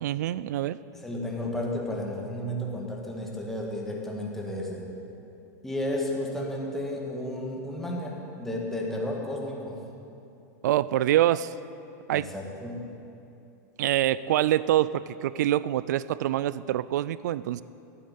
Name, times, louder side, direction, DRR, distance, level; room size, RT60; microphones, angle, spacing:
voice 1, 0.0-0.8 10.6-11.5 12.1-12.3 13.8-17.6, right 13 dB, 90° right, 18 dB, 0.4 m, -25 dB
voice 2, 0.9-4.8 5.6-9.8 12.1-12.9, left 1 dB, 5° left, -2 dB, 1.9 m, -33 dB
12.0 x 9.7 x 9.2 m, 2.7 s
supercardioid pair, 160°, 9 cm